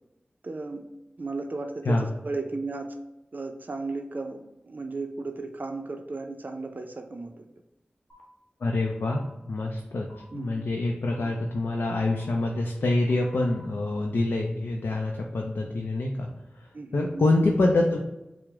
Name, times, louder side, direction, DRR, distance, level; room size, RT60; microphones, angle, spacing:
voice 1, 0.4-0.9 1.2-2.9 3.3-7.5 10.3-10.5 16.7-17.3, right 3 dB, 55° right, 5 dB, 0.4 m, -35 dB
sound 1, 8.1-8.2 9.1-9.2 10.1-10.2 11.1-11.2 12.1-12.2 13.1-13.6, left 3 dB, 20° left, 1.0 m, -53 dB
voice 2, 8.6-9.2 9.5-10.1 10.3-16.3 16.5-18.0, left 2 dB, 90° left, 0 dB, 0.4 m, -26 dB
4.7 x 2.0 x 3.5 m, 0.93 s
cardioid pair, 45°, 4 cm